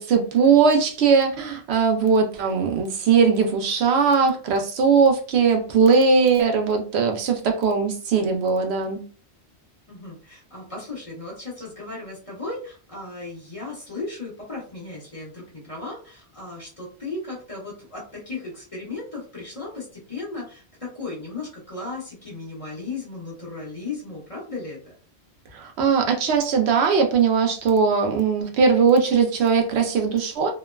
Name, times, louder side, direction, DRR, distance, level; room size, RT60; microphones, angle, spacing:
voice 1, 0.1-9.0 25.5-30.5, right 5 dB, 75° right, 3 dB, 0.8 m, -19 dB
voice 2, 9.9-24.9, left 3 dB, 30° left, -5 dB, 1.0 m, -36 dB
2.9 x 2.1 x 2.2 m, 0.38 s
omnidirectional pair, 1.1 m